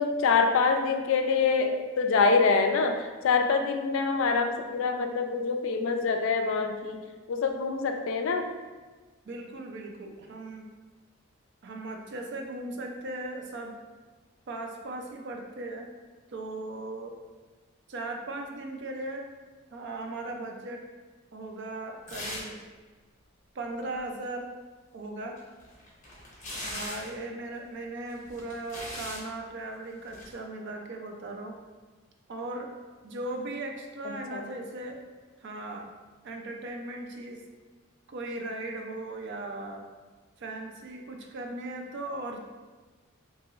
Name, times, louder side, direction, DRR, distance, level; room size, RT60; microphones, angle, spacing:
voice 1, 0.0-7.0 7.3-8.5 34.0-34.5, left 4 dB, 65° left, 5 dB, 0.3 m, -25 dB
voice 2, 9.2-10.7 11.6-13.8 14.5-15.9 16.3-17.1 17.9-19.3 19.7-20.8 21.3-22.6 23.5-24.5 24.9-25.4 26.6-31.6 32.3-32.7 33.0-35.0 35.4-35.9 36.2-37.4 38.1-39.8 40.4-42.4, right 2 dB, 55° right, 3 dB, 0.4 m, -38 dB
sound 1, 22.1-22.6 22.9-23.0 25.4-27.2 28.1-29.3 30.1-30.3, left 1 dB, 40° left, 1.0 m, -39 dB
3.8 x 2.9 x 2.4 m, 1.3 s
head